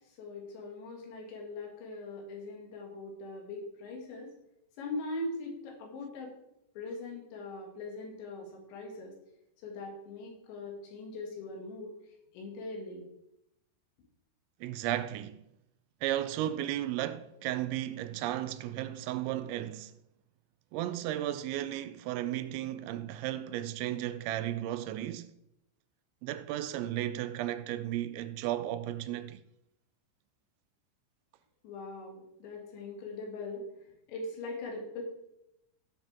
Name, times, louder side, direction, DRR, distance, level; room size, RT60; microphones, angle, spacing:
voice 1, 0.2-4.3 4.8-6.3 6.8-9.1 9.6-11.9 12.3-13.1 31.6-33.7 34.1-35.0, left 2 dB, 75° left, 4.5 m, -41 dB
voice 2, 14.6-15.4 16.0-19.9 20.7-25.3 26.2-29.4, right 13 dB, 80° right, 2.9 m, -34 dB
17.0 x 7.2 x 3.6 m
omnidirectional pair, 5.4 m